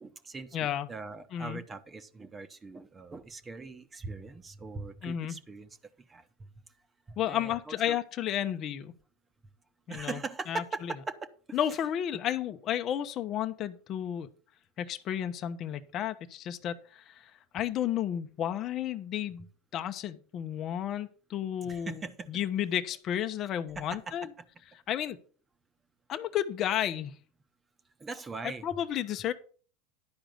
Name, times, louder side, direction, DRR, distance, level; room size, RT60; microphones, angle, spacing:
voice 1, 0.0-5.8 6.1-6.3 7.1-8.0 9.9-11.2 11.5-11.6 21.6-22.3 23.8-24.2 28.0-28.7, right 3 dB, 20° right, 10 dB, 1.0 m, -41 dB
voice 2, 0.5-0.9 1.3-1.6 5.0-5.4 7.2-8.9 9.9-10.2 10.5-10.6 11.5-14.3 14.8-19.5 19.7-22.0 22.3-24.3 24.9-25.2 26.1-27.2 28.4-29.3, left 10 dB, 45° left, 8 dB, 0.8 m, -32 dB
10.5 x 4.9 x 6.5 m, 0.42 s
hypercardioid pair, 100°, 0 cm